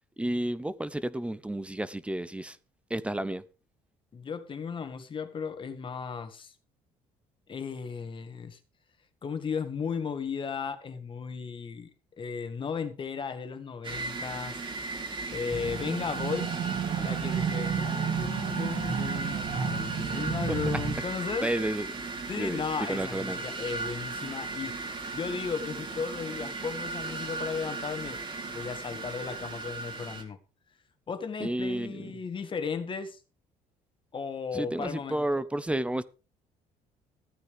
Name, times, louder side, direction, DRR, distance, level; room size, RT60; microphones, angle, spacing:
voice 1, 0.2-2.6 2.9-3.4 20.5-20.6 21.4-21.9 22.4-22.6 22.9-23.4 31.4-32.1 34.5-36.0, right 1 dB, 10° right, 0.7 m, -31 dB
voice 2, 4.1-6.5 7.5-8.6 9.2-11.9 12.2-14.6 15.3-16.6 17.0-21.5 22.3-24.8 25.1-28.2 28.5-30.4 31.1-33.2 34.1-35.2, left 6 dB, 35° left, 1.9 m, -35 dB
sound 1, 13.8-30.2, right 3 dB, 35° right, 2.5 m, -37 dB
sound 2, 15.5-21.0, right 7 dB, 55° right, 3.4 m, -32 dB
14.5 x 9.6 x 3.5 m
cardioid pair, 110°, 15 cm